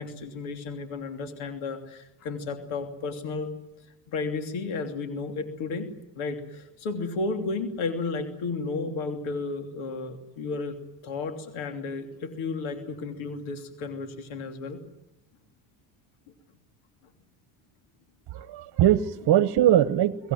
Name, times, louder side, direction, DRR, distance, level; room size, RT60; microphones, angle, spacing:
voice 1, 0.0-3.5 4.1-10.8 11.0-14.8, left 3 dB, 70° left, 6 dB, 3.1 m, -33 dB
voice 2, 18.3-20.3, right 12 dB, 50° right, 15 dB, 1.2 m, -21 dB
23.5 x 18.0 x 9.4 m, 0.95 s
cardioid pair, 105°, 50 cm